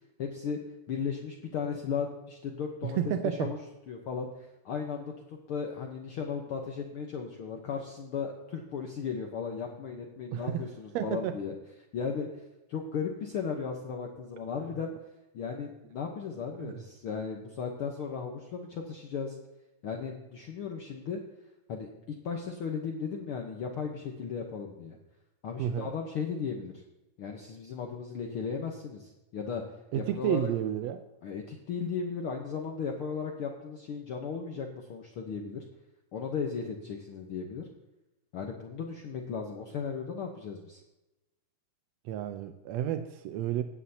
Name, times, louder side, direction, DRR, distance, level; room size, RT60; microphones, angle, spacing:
voice 1, 0.2-0.6 0.9-3.6 3.9-5.1 5.5-11.5 11.9-12.3 12.7-14.9 15.3-19.4 19.8-21.2 21.7-25.0 25.4-26.8 27.2-29.6 30.0-30.5 31.2-35.7 36.1-37.6 38.3-40.8, left 6 dB, 60° left, 2 dB, 1.5 m, -36 dB
voice 2, 2.8-3.5 10.3-10.6 11.0-11.4 16.6-16.8 25.6-25.9 29.9-31.0 42.1-43.6, right 11 dB, 80° right, 8 dB, 1.6 m, -31 dB
16.0 x 9.9 x 2.8 m, 0.97 s
omnidirectional pair, 3.5 m